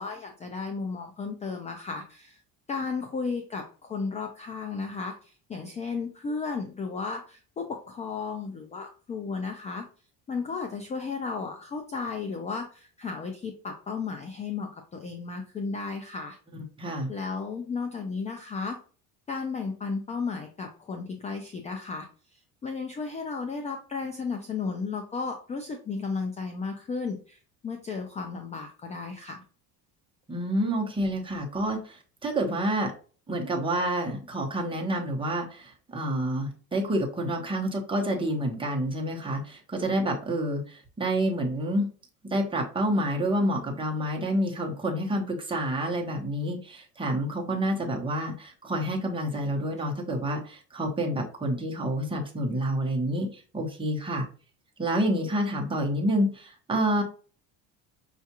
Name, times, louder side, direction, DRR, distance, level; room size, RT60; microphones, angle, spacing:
voice 1, 0.0-2.4 2.7-9.8 10.3-16.4 17.1-18.8 19.3-29.4, left 4 dB, 20° left, 4 dB, 0.4 m, -34 dB
voice 2, 16.5-17.1 30.3-32.9 33.3-41.9 42.3-54.3 54.8-57.0, right 1 dB, 15° right, 0 dB, 0.9 m, -28 dB
5.5 x 2.4 x 2.8 m, 0.39 s
cardioid pair, 135°, 35 cm